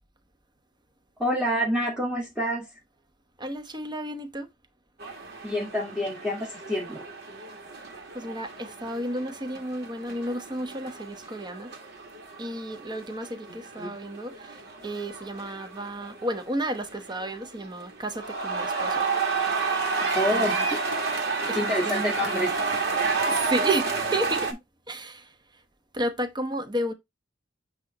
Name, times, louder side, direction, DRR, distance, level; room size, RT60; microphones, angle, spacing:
voice 1, 1.2-2.7 5.4-7.0 13.8-13.9 20.1-20.6 21.5-22.5, equal, 5° right, 1.7 m, -27 dB
voice 2, 3.4-4.5 8.1-11.7 12.4-19.1 20.3-20.7 21.5-22.5 23.2-24.5 24.9-25.3 25.9-26.9, right 1 dB, 25° right, 1.0 m, -32 dB
sound 1, 5.0-24.5, right 4 dB, 60° right, 1.8 m, -31 dB
8.2 x 3.0 x 4.1 m
head